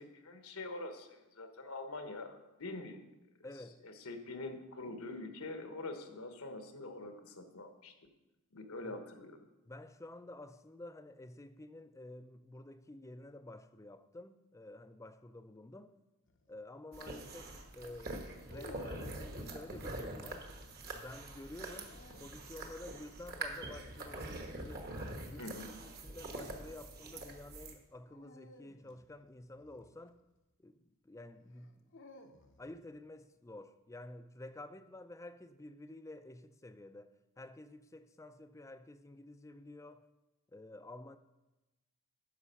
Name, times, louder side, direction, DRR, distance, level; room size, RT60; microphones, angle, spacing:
voice 1, 0.0-3.0 3.8-7.9 8.5-9.4 25.4-25.7, left 2 dB, 80° left, 1.2 m, -45 dB
voice 2, 3.4-3.8 8.8-9.0 9.7-16.0 16.5-20.5 20.9-24.9 25.3-25.5 25.8-30.2 30.6-31.9 32.6-40.1 40.5-41.2, left 1 dB, 15° left, 0.4 m, -51 dB
sound 1, 16.3-16.6 18.1-19.4 21.5-22.5 24.9-25.3 28.1-30.5 31.5-32.8, left 1 dB, 60° left, 0.7 m, -56 dB
sound 2, 16.9-27.7, right 2 dB, 45° right, 1.2 m, -45 dB
9.8 x 6.0 x 5.6 m
head